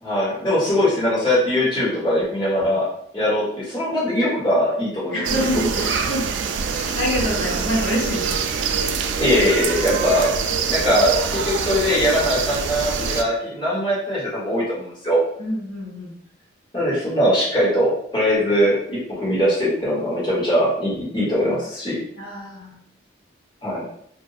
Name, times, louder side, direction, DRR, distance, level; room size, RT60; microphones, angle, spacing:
voice 1, 0.0-2.9 3.1-5.2 5.5-5.8 9.2-10.3 10.7-15.2 16.7-22.0 23.6-23.8, equal, 25° left, -8 dB, 1.4 m, -21 dB
voice 2, 5.1-6.3 6.7-8.4 15.4-16.1 22.2-22.8, left 1 dB, 85° left, -3 dB, 1.4 m, -26 dB
sound 1, 5.2-13.2, right 5 dB, 75° right, 0.3 m, -24 dB
2.6 x 2.4 x 4.0 m, 0.69 s
head